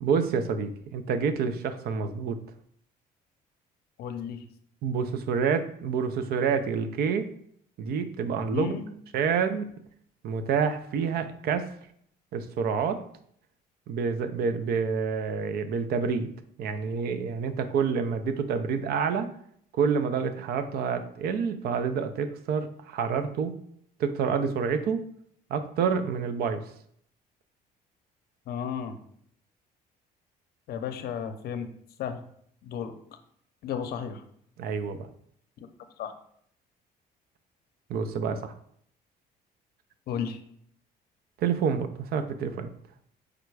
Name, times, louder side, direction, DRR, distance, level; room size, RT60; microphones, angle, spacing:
voice 1, 0.0-2.4 4.8-7.3 7.8-8.7 9.1-9.7 10.2-11.7 12.3-13.0 13.9-16.3 16.6-19.3 19.7-23.5 24.0-25.0 25.5-26.6 34.6-35.1 37.9-38.5 41.4-42.7, right 6 dB, 65° right, 10 dB, 0.5 m, -28 dB
voice 2, 4.0-4.4 8.5-8.8 28.5-29.0 30.7-31.7 32.0-32.2 32.6-32.9 33.6-34.2 36.0-36.1 40.1-40.4, left 7 dB, 65° left, 8 dB, 0.6 m, -33 dB
5.0 x 2.2 x 4.6 m, 0.66 s
cardioid pair, 110°, 17 cm